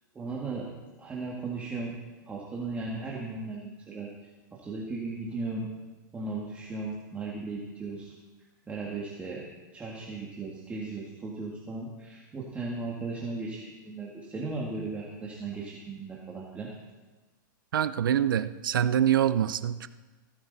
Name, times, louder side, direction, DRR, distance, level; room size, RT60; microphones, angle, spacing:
voice 1, 0.1-0.7 1.0-1.9 2.3-4.1 4.5-5.7 6.1-8.1 8.7-9.4 9.7-16.7, right 3 dB, 10° right, -3 dB, 2.0 m, -36 dB
voice 2, 17.7-19.9, right 10 dB, 80° right, 13 dB, 0.7 m, -25 dB
17.0 x 14.0 x 4.1 m, 1.3 s
hypercardioid pair, 140°, 11 cm